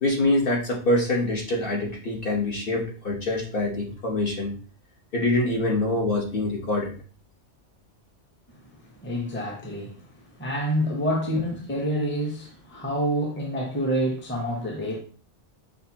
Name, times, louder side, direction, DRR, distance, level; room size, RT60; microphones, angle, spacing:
voice 1, 0.0-4.5 5.1-6.9, left 2 dB, 55° left, 1.3 m, -25 dB
voice 2, 9.0-15.0, equal, 10° left, 0.8 m, -28 dB
6.0 x 2.5 x 2.8 m
omnidirectional pair, 1.2 m